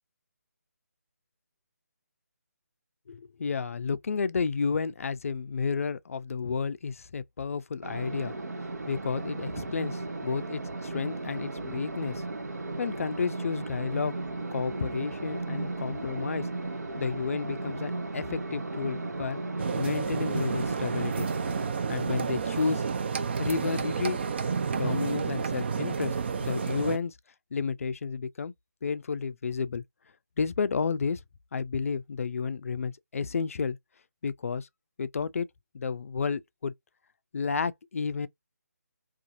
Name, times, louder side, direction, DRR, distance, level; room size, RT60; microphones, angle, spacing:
voice 1, 3.1-8.3 8.9-12.3 12.8-14.2 14.5-16.5 17.0-19.4 19.8-21.3 21.9-22.8 23.4-24.2 24.7-27.2 27.5-28.5 28.8-29.8 30.4-31.2 31.5-33.8 34.2-34.7 35.0-35.5 35.7-36.7 37.3-38.3, left 5 dB, 55° left, 0.3 m, -31 dB
sound 1, 7.8-21.7, right 2 dB, 75° right, 0.8 m, -36 dB
sound 2, 19.6-27.0, right 5 dB, 40° right, 0.4 m, -30 dB
2.6 x 2.4 x 2.5 m
figure-of-eight pair, 155°, 9 cm